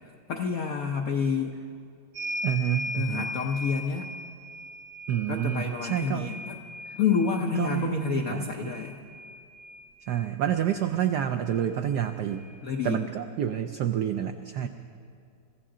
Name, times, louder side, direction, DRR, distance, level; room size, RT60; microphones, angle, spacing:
voice 1, 0.3-1.6 2.9-4.1 5.3-6.6 6.9-9.0 12.6-13.0, left 6 dB, 75° left, 3 dB, 0.8 m, -28 dB
sound 1, 2.1-10.3 11.5-11.6 11.9-13.0, left 1 dB, 60° right, 0.9 m, -39 dB
voice 2, 2.4-3.3 5.1-6.3 7.6-8.7 10.1-12.4 12.8-14.7, right 10 dB, 85° right, 8 dB, 0.9 m, -28 dB
25.0 x 15.0 x 3.8 m, 2.3 s
omnidirectional pair, 2.4 m